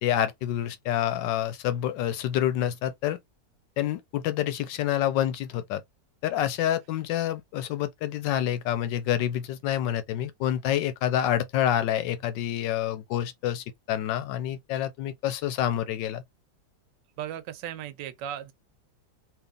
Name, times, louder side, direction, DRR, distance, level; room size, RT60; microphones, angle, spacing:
voice 1, 0.0-3.2 3.8-5.8 6.2-16.2, left 11 dB, 80° left, 1.3 m, -27 dB
voice 2, 17.2-18.5, right 10 dB, 80° right, 1.2 m, -36 dB
2.9 x 2.8 x 3.6 m
omnidirectional pair, 2.0 m